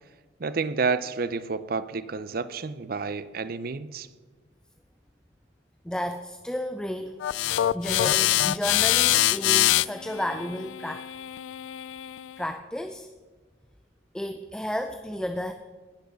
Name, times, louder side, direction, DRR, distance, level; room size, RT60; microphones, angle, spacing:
voice 1, 0.4-4.1, right 4 dB, 50° right, 15 dB, 0.6 m, -30 dB
voice 2, 5.8-7.2 7.6-11.1 12.4-13.1 14.1-15.5, left 1 dB, 5° left, 7 dB, 0.4 m, -32 dB
sound 1, 7.2-12.4, left 14 dB, 85° left, 0.3 m, -24 dB
17.5 x 6.4 x 6.8 m, 1.4 s
head